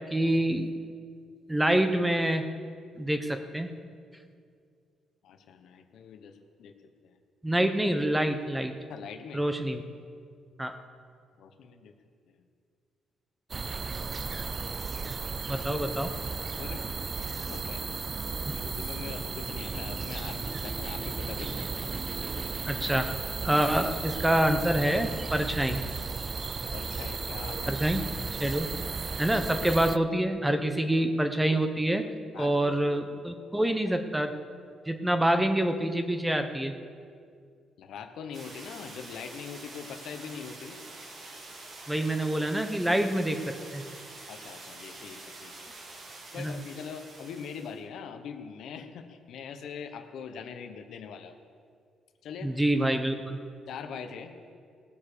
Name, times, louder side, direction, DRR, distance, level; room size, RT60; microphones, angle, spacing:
voice 1, 0.1-0.7 1.5-2.5 3.0-3.7 7.4-8.7 9.3-9.8 10.6-10.7 15.5-16.1 18.5-18.6 22.6-23.1 23.4-25.8 27.7-28.0 28.4-28.7 29.2-32.1 32.4-34.3 34.9-36.8 41.9-43.8 46.4-46.6 52.4-53.4, right 1 dB, 10° right, 7 dB, 1.0 m, -26 dB
voice 2, 5.2-6.7 7.0-7.2 8.9-9.4 11.4-11.9 12.3-12.4 15.5-15.9 16.4-18.0 18.5-21.6 26.7-27.8 30.5-30.9 32.3-32.8 37.8-40.8 44.3-45.7 46.3-51.4 52.2-52.9 53.7-54.3, left 6 dB, 75° left, 7 dB, 1.1 m, -42 dB
sound 1, 13.5-30.0, right 4 dB, 35° right, 0.3 m, -34 dB
sound 2, 38.3-47.8, right 2 dB, 55° right, 2.4 m, -46 dB
18.0 x 7.2 x 6.9 m, 2.2 s
cardioid pair, 90°, 0 cm